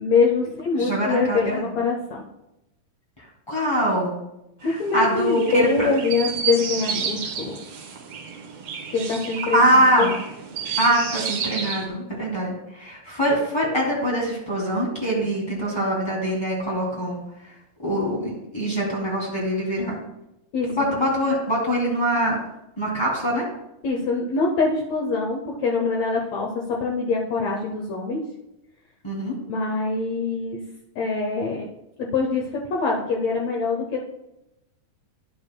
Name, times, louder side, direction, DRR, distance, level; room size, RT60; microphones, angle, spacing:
voice 1, 0.0-2.2 4.6-7.6 8.9-9.7 10.0-10.1 20.5-20.7 23.8-28.2 29.5-30.6 31.0-31.7 32.0-34.0, left 4 dB, 85° left, -1 dB, 1.5 m, -24 dB
voice 2, 0.8-1.7 3.2-4.2 4.6-5.9 9.5-10.2 10.8-17.5 17.8-20.0 20.7-22.4 22.8-23.4 29.0-29.3, right 1 dB, 10° left, -4 dB, 1.6 m, -23 dB
Chirp tweet, 4.6-11.9, right 6 dB, 70° right, 1.6 m, -31 dB
11.0 x 8.4 x 2.3 m, 0.87 s
omnidirectional pair, 4.3 m